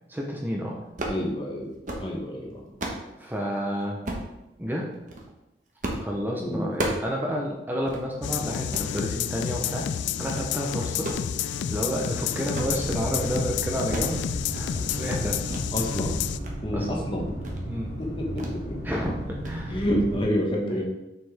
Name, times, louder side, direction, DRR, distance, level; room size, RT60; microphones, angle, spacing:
voice 1, 0.1-0.9 3.2-4.0 4.6-5.0 6.0-9.9 10.2-11.1 11.7-15.5 16.7-17.1 17.7-18.0 18.8-19.8 20.7-20.8, equal, 10° right, -2 dB, 0.8 m, -30 dB
sound 1, 0.8-1.2 1.7-2.1 2.5-3.1 4.0-4.3 4.9-5.2 5.8-6.1 6.4-7.1 7.5-7.6 7.9-8.0 8.5-8.9 9.4-9.7 10.1-10.5 10.9-12.1 12.4-12.8 13.1-13.4 13.6-14.2 14.4-14.9 15.5-15.7 16.1-16.5 16.9-17.0 17.4-17.6 18.4-18.6 18.9-19.1 19.4-19.6, right 1 dB, 45° right, 1.2 m, -34 dB
voice 2, 1.1-1.7 2.0-2.6 6.4-6.7 15.7-16.2 16.6-17.3 18.0-18.9 19.7-20.8, equal, 30° left, -1 dB, 1.2 m, -28 dB
sound 2, 8.2-16.4, left 9 dB, 85° left, 0.3 m, -30 dB
sound 3, 12.5-20.2, equal, 65° left, 1.5 m, -35 dB
6.8 x 6.5 x 3.4 m, 0.95 s
head